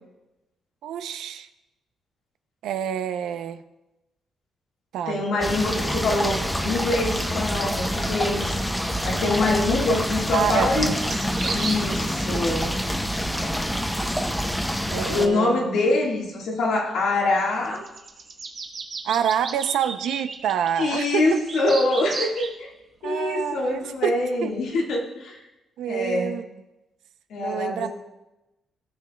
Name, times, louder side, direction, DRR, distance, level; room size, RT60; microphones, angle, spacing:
voice 1, 0.8-1.5 2.6-3.6 4.9-5.2 10.3-11.0 14.9-15.7 19.0-21.4 23.0-24.5 25.8-26.5 27.4-27.9, right 9 dB, 90° right, 11 dB, 0.5 m, -27 dB
voice 2, 5.1-8.6 9.0-11.0 11.5-12.8 15.1-17.8 20.8-22.7 23.0-25.4 25.9-26.4 27.3-27.9, left 2 dB, 80° left, -1 dB, 1.6 m, -24 dB
sound 1, 5.4-15.3, equal, 5° left, 0.6 m, -26 dB
sound 2, 11.1-11.8 16.6-16.7 17.5-22.5, right 4 dB, 45° right, 1.1 m, -34 dB
16.5 x 6.2 x 2.2 m, 1.0 s
cardioid pair, 125°, 0 cm